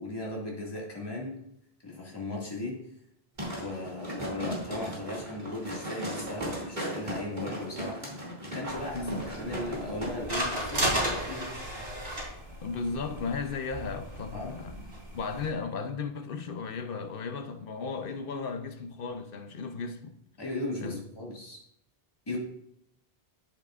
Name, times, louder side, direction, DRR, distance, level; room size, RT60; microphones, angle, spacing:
voice 1, 0.0-1.3 1.8-2.8 3.6-8.1 8.4-11.5 14.3-14.5 20.4-21.6 22.3-22.4, left 2 dB, 25° left, 2.0 m, -37 dB
sound 1, 3.4-10.1 10.5-10.6, right 1 dB, 45° right, 2.6 m, -36 dB
sound 2, 8.7-15.5, right 1 dB, 80° right, 3.5 m, -35 dB
voice 2, 12.6-14.8 15.1-20.2 20.8-21.0 22.3-22.4, left 4 dB, 65° left, 0.9 m, -35 dB
10.5 x 8.6 x 2.4 m
omnidirectional pair, 1.0 m